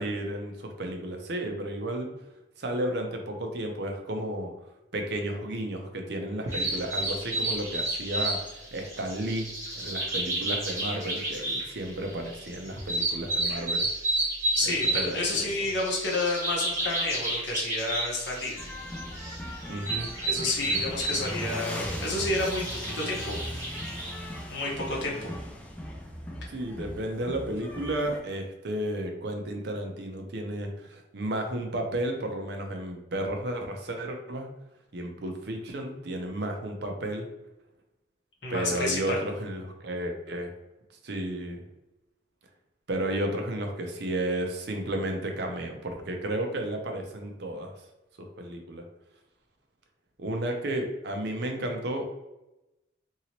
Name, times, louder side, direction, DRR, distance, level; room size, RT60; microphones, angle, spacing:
voice 1, 0.0-2.1 2.6-4.5 4.9-8.4 8.7-13.8 14.6-15.5 19.7-20.1 20.7-20.8 25.1-25.2 26.5-34.5 34.9-37.3 38.5-40.5 41.0-41.6 42.9-47.7 48.2-48.8 50.2-52.1, right 1 dB, 60° right, 3 dB, 0.6 m, -33 dB
sound 1, 6.5-24.2, right 2 dB, 15° right, 1.0 m, -32 dB
voice 2, 14.6-18.5 20.2-23.5 24.5-25.3 38.4-39.2, left 2 dB, 65° left, -3 dB, 1.0 m, -30 dB
sound 2, 18.6-28.2, equal, 5° left, 0.4 m, -38 dB
2.8 x 2.8 x 2.9 m, 0.97 s
head